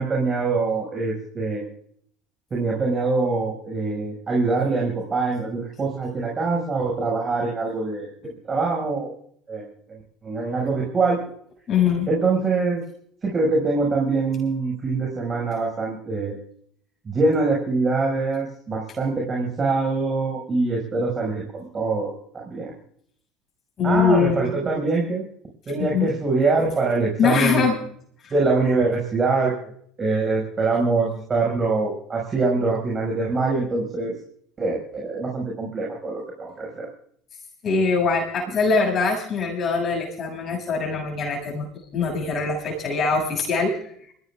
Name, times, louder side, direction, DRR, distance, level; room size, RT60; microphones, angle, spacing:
voice 1, 0.0-1.7 2.5-9.1 9.5-9.6 9.9-11.2 12.1-12.8 13.2-16.4 17.1-22.7 23.8-25.2 25.7-27.7 28.3-29.7 30.0-34.2 34.6-36.9, right 3 dB, 30° right, -1 dB, 5.7 m, -24 dB
voice 2, 11.7-12.1 23.8-24.4 25.8-26.1 27.2-27.8 28.2-28.3 37.6-41.7 41.9-43.7, left 5 dB, 40° left, 0 dB, 7.2 m, -22 dB
29.0 x 16.0 x 2.4 m, 0.64 s
hypercardioid pair, 70°, 0 cm